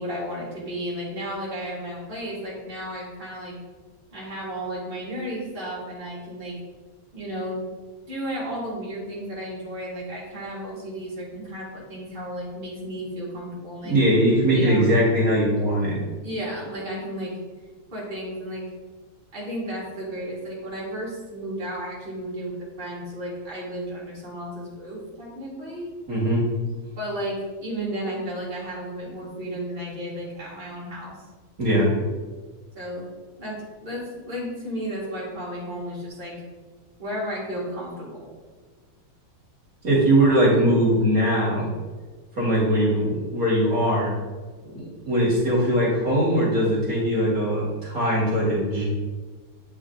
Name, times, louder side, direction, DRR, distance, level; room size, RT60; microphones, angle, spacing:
voice 1, 0.0-3.5 4.1-6.5 7.1-7.6 8.1-13.9 14.5-14.9 16.2-17.4 17.9-18.7 19.3-25.9 27.0-31.1 32.7-33.0 33.4-36.4 37.0-38.3, equal, 25° right, -7 dB, 2.0 m, -33 dB
voice 2, 13.8-16.1 26.1-26.4 31.6-31.9 39.8-41.7 42.4-44.1 44.6-48.8, right 1 dB, 45° right, -6 dB, 2.2 m, -21 dB
8.5 x 4.6 x 3.7 m, 1.4 s
omnidirectional pair, 2.3 m